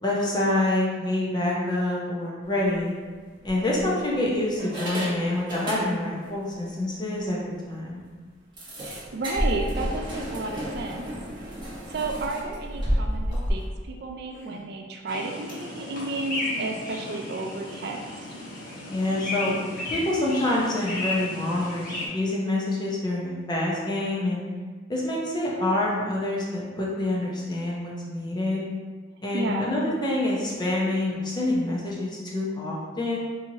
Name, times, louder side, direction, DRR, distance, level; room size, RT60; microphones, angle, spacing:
voice 1, 0.0-2.9 3.4-8.0 18.9-19.6 19.9-24.4 24.9-28.6 29.2-33.2, left 1 dB, 20° left, -4 dB, 0.6 m, -26 dB
sound 1, 2.5-2.8 3.4-4.1 4.6-6.3 6.6-6.7 7.1-7.2 7.6-7.7 8.6-13.5, equal, 25° right, 0.9 m, -31 dB
voice 2, 8.8-11.1 11.4-11.6 11.9-18.0 29.3-29.7, right 2 dB, 55° right, 1 dB, 0.4 m, -32 dB
sound 2, 13.1-13.8 14.3-14.6 15.5-15.7 16.4-16.8 17.7-17.8, left 1 dB, 70° left, 0.6 m, -44 dB
sound 3, 15.1-22.1, left 2 dB, 50° left, 0.9 m, -34 dB
4.3 x 2.8 x 2.7 m, 1.5 s
head